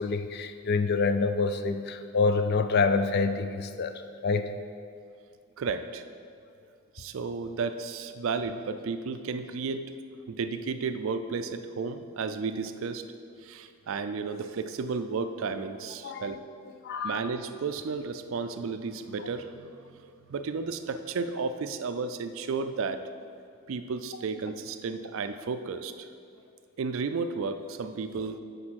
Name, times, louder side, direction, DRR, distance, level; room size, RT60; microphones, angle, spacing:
voice 1, 0.0-3.9 4.2-4.5 16.0-16.4 16.8-17.2, left 4 dB, 45° left, 9 dB, 0.4 m, -27 dB
voice 2, 5.6-6.0 6.9-9.9 10.3-13.0 13.4-16.4 17.0-23.0 23.7-26.1 26.8-28.4, right 4 dB, 60° right, 10 dB, 0.4 m, -33 dB
6.1 x 5.1 x 6.3 m, 2.3 s
head